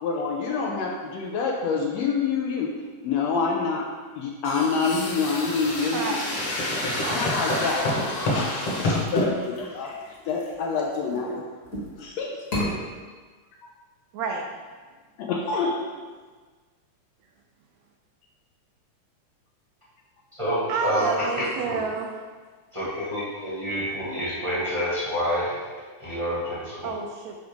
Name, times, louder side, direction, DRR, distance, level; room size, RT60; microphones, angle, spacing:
voice 1, 0.0-2.7 3.0-3.8 4.1-6.2 7.1-7.9 8.3-9.9 10.3-11.4 12.0-12.3 12.7-12.8 15.2-15.8, left 4 dB, 75° left, -1 dB, 1.7 m, -27 dB
sound 1, 4.4-9.3, left 1 dB, 55° left, 2.1 m, -27 dB
sound 2, 7.3-11.2 11.6-12.0 12.4-12.7, left 1 dB, 35° left, 1.4 m, -34 dB
voice 2, 11.1-11.4 14.1-14.4 20.7-22.1 26.8-27.4, right 5 dB, 80° right, 1 dB, 1.7 m, -29 dB
voice 3, 20.3-21.1 21.4-21.8 22.7-25.6 26.0-26.9, equal, 20° right, -8 dB, 0.9 m, -28 dB
7.9 x 5.0 x 3.6 m, 1.4 s
omnidirectional pair, 3.5 m